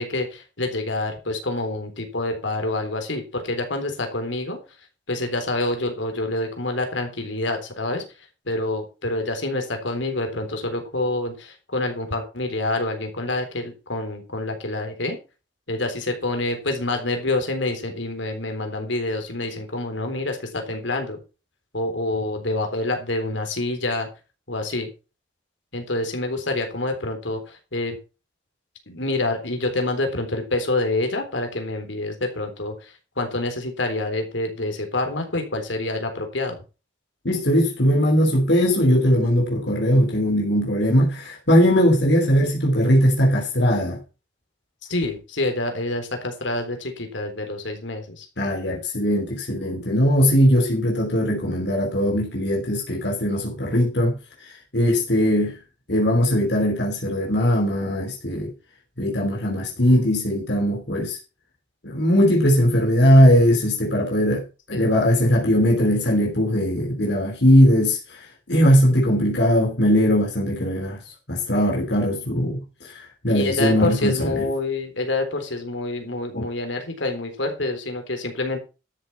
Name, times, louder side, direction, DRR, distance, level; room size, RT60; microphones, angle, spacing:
voice 1, 0.0-4.6 5.1-8.0 8.5-15.2 15.7-21.2 21.7-24.1 24.5-24.9 25.7-28.0 28.9-36.6 44.9-48.3 64.7-64.9 73.3-78.6, left 2 dB, 80° left, 3.7 m, -27 dB
voice 2, 37.2-44.0 48.4-55.6 55.9-58.5 59.0-61.2 61.8-68.2 68.5-71.0 71.3-74.5 76.3-76.4, equal, 65° left, 3.1 m, -20 dB
12.5 x 7.6 x 5.7 m
head